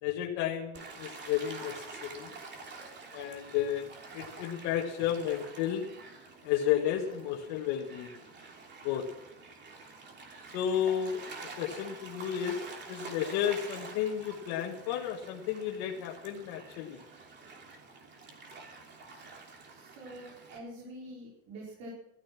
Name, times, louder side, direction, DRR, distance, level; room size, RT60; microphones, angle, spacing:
voice 1, 0.0-2.3 3.1-5.9 6.4-8.2 8.8-9.1 10.5-11.2 11.6-17.0, left 10 dB, 75° left, 0 dB, 1.9 m, -32 dB
Gull seagull / Waves surf, 0.7-20.6, right 3 dB, 35° right, 3.0 m, -48 dB
voice 2, 19.7-21.9, right 1 dB, 65° right, -3 dB, 4.8 m, -46 dB
14.0 x 13.0 x 6.0 m, 0.84 s
cardioid pair, 135°, 32 cm